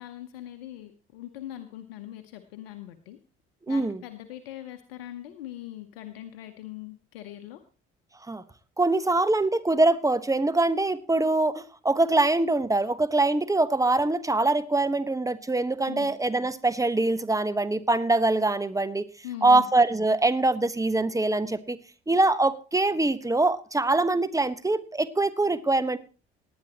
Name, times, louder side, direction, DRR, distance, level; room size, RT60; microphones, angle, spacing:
voice 1, 0.0-3.2 3.7-7.6 15.9-16.1 19.2-19.7, left 13 dB, 80° left, 8 dB, 0.9 m, -41 dB
voice 2, 3.7-4.0 8.3-8.4 8.8-19.0 19.4-21.8 22.1-26.0, right 2 dB, 10° right, 13 dB, 1.2 m, -23 dB
18.5 x 9.8 x 3.0 m, 0.34 s
hypercardioid pair, 50°, 29 cm